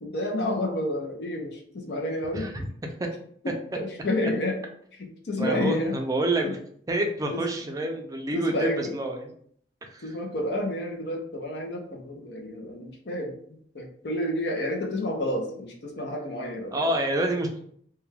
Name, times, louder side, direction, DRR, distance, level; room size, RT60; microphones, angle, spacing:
voice 1, 0.0-2.5 3.4-4.6 4.9-6.0 6.4-6.6 7.3-7.4 8.3-9.0 10.0-16.9, left 1 dB, 65° left, 1 dB, 0.6 m, -30 dB
voice 2, 2.4-2.7 5.4-6.6 6.9-9.3 9.9-10.0 16.7-17.5, right 1 dB, 20° right, 2 dB, 0.4 m, -27 dB
2.2 x 2.2 x 3.2 m, 0.63 s
head